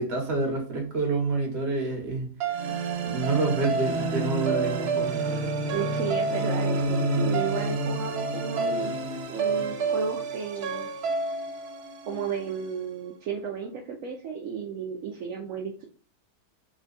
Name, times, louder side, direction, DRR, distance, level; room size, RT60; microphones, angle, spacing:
voice 1, 0.0-2.3 3.0-5.3, right 3 dB, 45° right, 1 dB, 1.2 m, -28 dB
sound 1, 2.4-12.7, right 3 dB, 80° right, 0.5 m, -28 dB
voice 2, 5.7-8.9 9.3-10.9 12.0-15.9, right 6 dB, 65° right, 1 dB, 0.9 m, -33 dB
3.5 x 2.2 x 3.9 m, 0.38 s
omnidirectional pair, 1.6 m